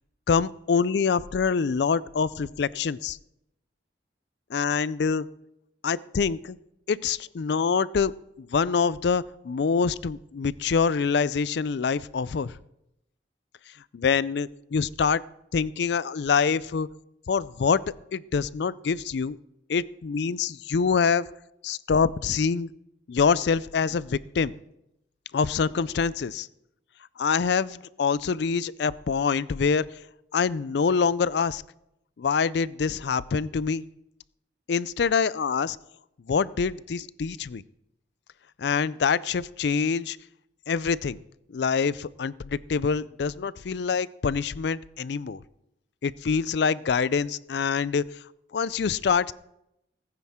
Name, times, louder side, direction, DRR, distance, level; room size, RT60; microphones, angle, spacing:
voice 1, 0.3-3.2 4.5-5.3 5.8-6.6 6.9-8.1 8.4-12.5 13.9-15.2 15.5-16.9 17.3-17.8 18.1-19.4 19.7-21.3 21.6-22.7 23.1-24.5 25.3-26.5 27.2-29.9 30.3-31.6 32.2-33.8 34.7-35.8 36.3-37.6 38.6-40.2 40.7-41.2 41.5-45.4 46.0-48.0 48.5-49.3, left 5 dB, 60° left, 19 dB, 0.4 m, -25 dB
19.0 x 9.7 x 3.6 m, 0.83 s
head